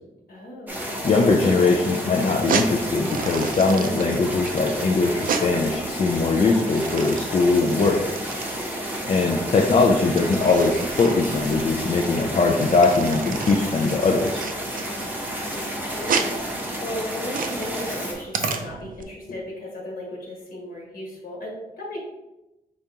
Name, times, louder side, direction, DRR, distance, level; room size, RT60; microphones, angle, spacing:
voice 1, 0.3-0.9 6.5-6.8 15.2-22.0, left 1 dB, 70° left, -3 dB, 1.4 m, -36 dB
sound 1, 0.7-18.1, equal, 10° right, 0.7 m, -31 dB
voice 2, 1.0-8.0 9.1-14.4, left 3 dB, 40° left, 1 dB, 0.4 m, -21 dB
sound 2, 2.4-19.0, right 6 dB, 60° right, 0.4 m, -32 dB
5.0 x 3.5 x 2.8 m, 0.95 s
wide cardioid pair, 175°, 16 cm